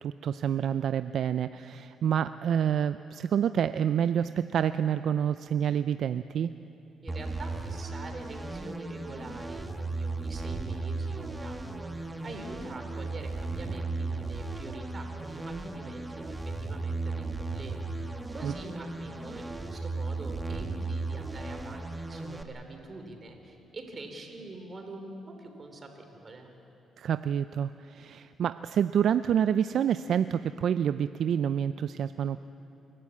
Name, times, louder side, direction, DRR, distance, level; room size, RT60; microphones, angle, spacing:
voice 1, 0.0-6.5 18.4-18.5 27.0-32.5, right 8 dB, 65° right, 12 dB, 0.4 m, -28 dB
voice 2, 7.0-26.5, right 2 dB, 35° right, 4 dB, 3.5 m, -45 dB
sound 1, 7.1-22.4, right 3 dB, 10° right, 1.4 m, -36 dB
28.5 x 12.0 x 8.5 m, 2.9 s
cardioid pair, 90°, 0 cm